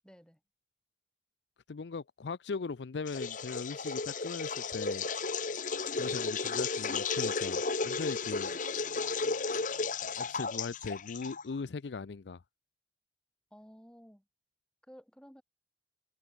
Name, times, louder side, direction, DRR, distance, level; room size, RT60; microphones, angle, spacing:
voice 1, 0.0-0.4 8.5-8.6 13.5-14.2 14.9-15.4, equal, 5° left, 5.5 m, -54 dB
voice 2, 1.7-5.1 6.0-8.5 10.0-12.4, left 4 dB, 80° left, 0.5 m, -39 dB
sound 1, 3.1-11.6, left 4 dB, 50° left, 1.3 m, -34 dB
head